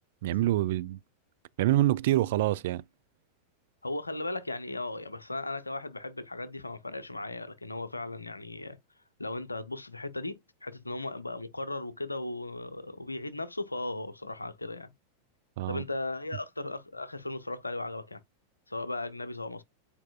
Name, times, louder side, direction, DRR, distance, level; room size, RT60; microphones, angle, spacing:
voice 1, 0.2-1.0 1.6-2.8 15.6-15.8, right 14 dB, 55° right, 0.3 m, -26 dB
voice 2, 3.8-8.8 9.2-14.9 15.7-18.2 18.7-19.6, left 2 dB, 80° left, 0.7 m, -37 dB
8.8 x 4.7 x 2.3 m
figure-of-eight pair, 90°, 0 cm